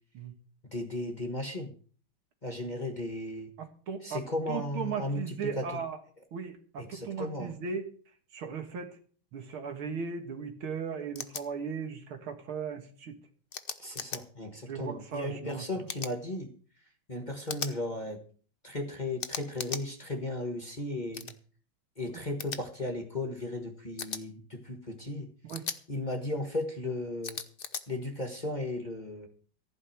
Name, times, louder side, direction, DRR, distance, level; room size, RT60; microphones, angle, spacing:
voice 1, 0.6-1.7 2.4-3.5 4.0-5.8 6.8-7.5 13.8-16.5 17.1-18.2 18.6-21.3 22.0-25.3 25.9-27.4 27.9-29.3, left 1 dB, 25° left, 4 dB, 1.5 m, -35 dB
voice 2, 3.6-6.0 6.3-7.9 8.3-9.0 9.3-13.2 14.7-15.6 21.2-21.3 25.5-25.6, right 6 dB, 75° right, 6 dB, 2.5 m, -37 dB
sound 1, 11.2-11.4 13.5-14.2 15.9-16.1 17.5-17.7 19.2-19.8 21.1-21.3 22.4-22.6 24.0-24.2 25.5-25.8 27.2-27.8, left 6 dB, 65° left, 0.5 m, -37 dB
15.0 x 5.4 x 9.4 m, 0.43 s
omnidirectional pair, 2.4 m